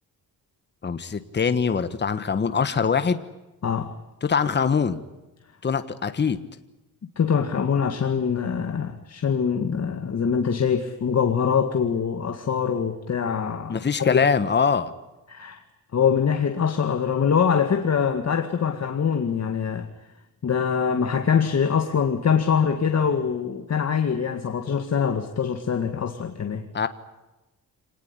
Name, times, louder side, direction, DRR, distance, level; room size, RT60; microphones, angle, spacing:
voice 1, 0.8-3.2 4.2-5.0 5.6-6.4 13.7-14.9 26.7-26.9, left 6 dB, 30° left, 11 dB, 1.4 m, -23 dB
voice 2, 3.6-4.0 7.2-14.2 15.3-15.6 15.9-19.9 20.4-26.6, left 7 dB, 45° left, 5 dB, 2.1 m, -24 dB
26.0 x 19.5 x 9.9 m, 1.0 s
wide cardioid pair, 145°, 36 cm